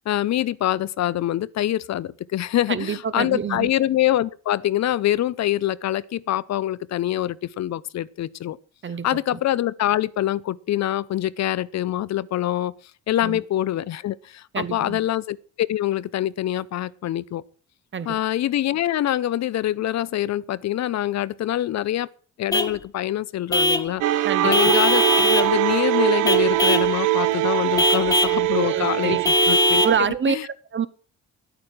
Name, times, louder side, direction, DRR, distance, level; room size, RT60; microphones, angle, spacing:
voice 1, 0.1-8.6 9.0-12.7 13.1-17.4 18.1-22.1 22.4-29.2 29.5-29.8 30.3-30.4, left 13 dB, 60° left, 0.7 m, -25 dB
voice 2, 2.7-3.7 8.8-9.1 13.2-13.4 14.5-15.0 17.9-18.2 24.2-24.5 28.5-29.3 29.8-30.9, right 7 dB, 40° right, 1.1 m, -26 dB
Vehicle horn car horn honking / Truck, 22.5-22.8 23.5-23.9 24.5-25.5 26.3-26.9 27.8-28.4 29.3-30.0, left 1 dB, 10° left, 1.5 m, -20 dB
sound 1, 24.0-30.0, right 16 dB, 90° right, 0.8 m, -22 dB
10.5 x 8.9 x 6.5 m
cardioid pair, 90°, 30 cm